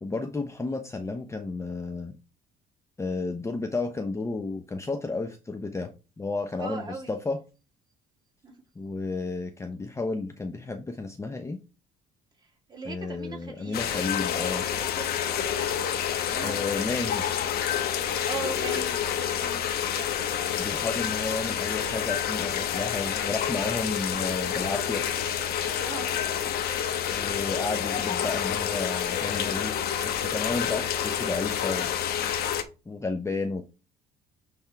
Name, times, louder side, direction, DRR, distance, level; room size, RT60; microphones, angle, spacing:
voice 1, 0.0-2.1 3.0-7.4 8.8-11.6 12.8-14.7 16.4-17.2 20.5-25.0 27.1-29.7 30.0-31.9 32.9-33.6, left 3 dB, 15° left, 0.8 m, -32 dB
voice 2, 6.6-7.2 8.4-8.5 12.4-14.6 14.9-15.9 16.2-20.4 25.8-26.1 26.4-26.5 27.2-27.5, right 4 dB, 25° right, 2.7 m, -41 dB
sound 1, 13.7-32.6, left 9 dB, 70° left, 1.0 m, -28 dB
10.0 x 3.6 x 3.5 m
cardioid pair, 110°, 17 cm